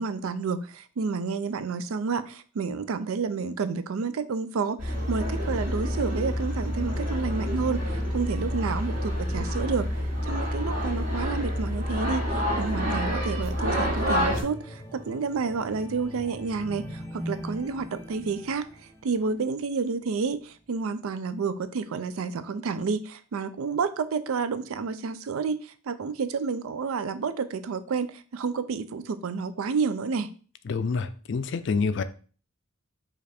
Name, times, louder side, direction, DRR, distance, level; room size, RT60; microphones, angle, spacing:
voice 1, 0.0-10.0 10.2-18.7 19.0-30.3, right 5 dB, 75° right, 0.4 m, -30 dB
sound 1, 4.8-14.4, equal, 40° right, 1.6 m, -28 dB
sound 2, 14.3-19.6 20.0-20.2, equal, 10° left, 0.8 m, -41 dB
voice 2, 30.7-32.0, left 4 dB, 55° left, 0.3 m, -27 dB
5.1 x 2.5 x 4.2 m
head